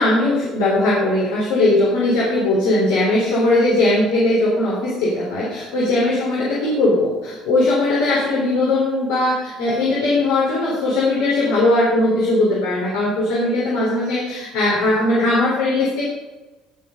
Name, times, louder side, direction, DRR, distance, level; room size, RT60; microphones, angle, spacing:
voice 1, 0.0-16.0, left 2 dB, 85° left, -6 dB, 4.0 m, -19 dB
17.0 x 5.7 x 5.4 m, 1.2 s
supercardioid pair, 85°, 0 cm